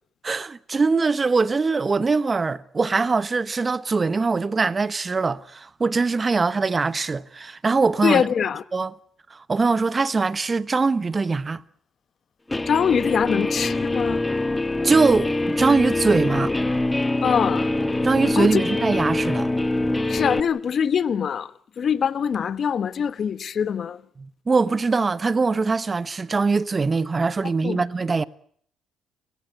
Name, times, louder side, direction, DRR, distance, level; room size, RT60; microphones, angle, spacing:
voice 1, 0.2-8.3 8.7-8.9 9.3-11.6 14.8-16.5 18.0-19.5 24.2-28.2, right 4 dB, 35° right, 1.0 m, -22 dB
voice 2, 8.0-8.6 12.7-14.2 17.2-17.7 18.4-18.6 20.1-21.5 21.8-24.0 27.6-27.8, left 7 dB, 55° left, 1.1 m, -23 dB
Guitar, 12.5-20.4, left 2 dB, 15° left, 1.7 m, -24 dB
30.0 x 15.5 x 9.2 m
supercardioid pair, 65°, 0 cm